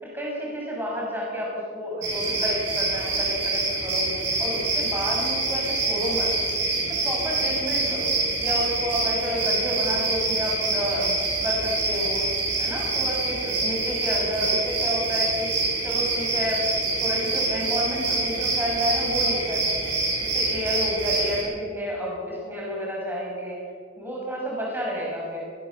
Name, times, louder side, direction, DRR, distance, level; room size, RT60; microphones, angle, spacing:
voice 1, 0.0-4.1 4.4-6.3 6.9-8.1 8.4-12.3 12.6-15.5 15.8-16.6 17.0-19.9 20.2-23.6 24.0-25.5, equal, 10° right, -3 dB, 6.0 m, -30 dB
sound 1, 2.0-21.4, right 3 dB, 75° right, 7.1 m, -26 dB
21.5 x 18.5 x 7.1 m, 2.1 s
head